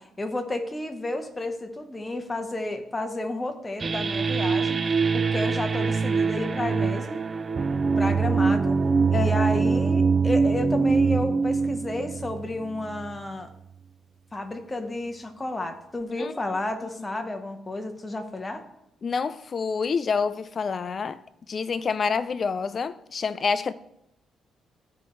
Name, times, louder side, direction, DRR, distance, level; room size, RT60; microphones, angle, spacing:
voice 1, 0.0-7.3 8.0-8.8 9.1-13.5 14.3-18.7, left 1 dB, 20° left, 1.0 m, -31 dB
sound 1, 3.8-13.2, right 5 dB, 35° right, 0.3 m, -24 dB
voice 2, 9.1-9.5 16.2-16.3 19.0-21.2 21.5-23.7, left 5 dB, 45° left, 0.4 m, -27 dB
13.5 x 4.5 x 3.1 m
cardioid pair, 90°, 0 cm